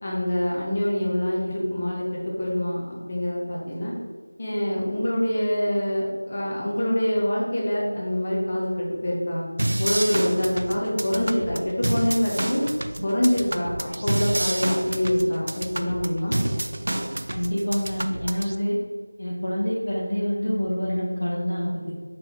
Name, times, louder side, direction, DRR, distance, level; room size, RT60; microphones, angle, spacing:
voice 1, 0.0-3.9 4.4-9.4 9.8-12.6 13.0-13.8 14.0-16.4, equal, 25° left, -4 dB, 1.0 m, -25 dB
sound 1, 9.6-18.6, right 1 dB, 45° right, 0.3 m, -29 dB
voice 2, 17.3-18.7 19.2-21.9, equal, 50° left, -9 dB, 1.6 m, -26 dB
6.7 x 4.1 x 3.5 m, 1.5 s
figure-of-eight pair, 180°, 0 cm